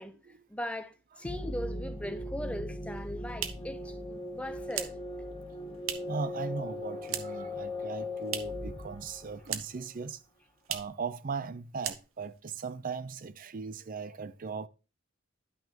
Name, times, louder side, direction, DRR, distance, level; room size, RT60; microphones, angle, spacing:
voice 1, 0.5-4.9, equal, 5° left, 0.7 m, -39 dB
sound 1, 1.2-9.9, left 2 dB, 25° left, 1.0 m, -39 dB
sound 2, 2.8-6.3 6.5-7.5 7.8-8.7 9.0-9.9 10.2-10.3 10.6-11.0 11.4-11.5 11.8-12.4, right 10 dB, 85° right, 0.8 m, -39 dB
voice 2, 6.1-10.2 10.7-14.7, right 5 dB, 40° right, 0.5 m, -38 dB
11.0 x 6.0 x 2.9 m
head